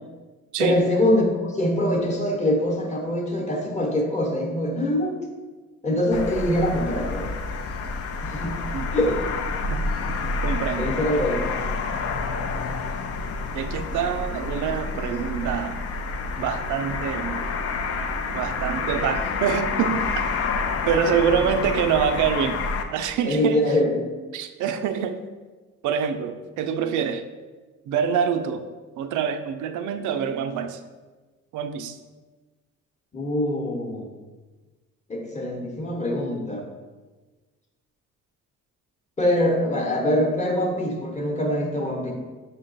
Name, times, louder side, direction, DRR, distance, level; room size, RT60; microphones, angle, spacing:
voice 1, 0.6-5.2 5.8-7.3 8.2-8.6 8.9-9.2 10.8-11.6 21.4-21.5 23.3-24.1 33.1-34.1 35.1-36.6 39.2-42.1, left 1 dB, 25° left, 0 dB, 1.0 m, -24 dB
sound 1, 6.1-22.8, left 4 dB, 50° left, 0.5 m, -28 dB
voice 2, 10.1-11.2 13.5-15.8 16.4-17.4 18.3-20.3 20.8-22.6 22.9-23.6 24.3-25.2 25.8-27.3 27.9-28.7 29.0-30.8 31.5-32.0, right 7 dB, 80° right, 8 dB, 0.5 m, -26 dB
5.5 x 2.3 x 3.9 m, 1.3 s
cardioid pair, 90°, 30 cm